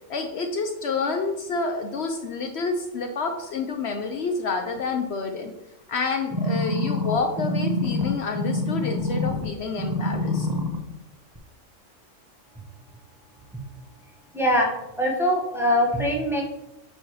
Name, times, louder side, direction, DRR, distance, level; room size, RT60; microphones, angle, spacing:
voice 1, 0.1-5.5 5.9-10.5, left 4 dB, 65° left, 5 dB, 0.9 m, -28 dB
sound 1, 6.3-9.5 9.8-10.8 11.4-11.5, left 2 dB, 20° right, 0.8 m, -26 dB
voice 2, 14.3-14.7 15.0-16.4, equal, ahead, -1 dB, 1.2 m, -22 dB
8.5 x 3.3 x 4.6 m, 0.91 s
omnidirectional pair, 1.3 m